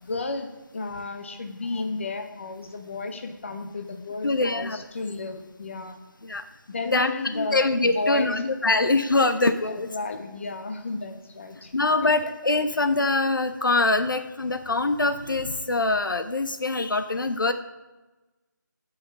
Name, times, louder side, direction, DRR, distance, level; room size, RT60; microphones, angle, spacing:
voice 1, 0.0-6.0 6.7-8.7 9.9-11.7 12.0-12.1, left 3 dB, 35° left, 6 dB, 0.9 m, -33 dB
voice 2, 4.2-4.8 6.2-6.4 6.9-9.9 11.7-17.5, left 2 dB, 75° left, 9 dB, 0.7 m, -24 dB
14.0 x 5.7 x 5.2 m, 1.1 s
figure-of-eight pair, 165°, 11 cm